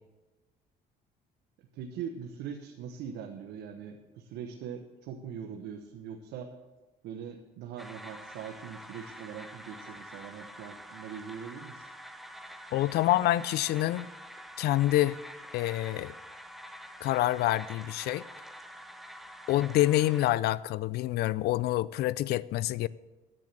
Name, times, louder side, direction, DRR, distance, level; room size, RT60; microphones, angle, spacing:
voice 1, 1.7-6.5 7.0-11.8, right 7 dB, 85° right, 1.1 m, -41 dB
sound 1, 7.8-20.3, equal, ahead, 0.9 m, -47 dB
voice 2, 12.7-14.1 14.6-15.2 15.5-16.1 17.0-18.2 19.5-22.9, left 15 dB, 70° left, 0.4 m, -27 dB
10.5 x 8.4 x 7.5 m
cardioid pair, 110°, 17 cm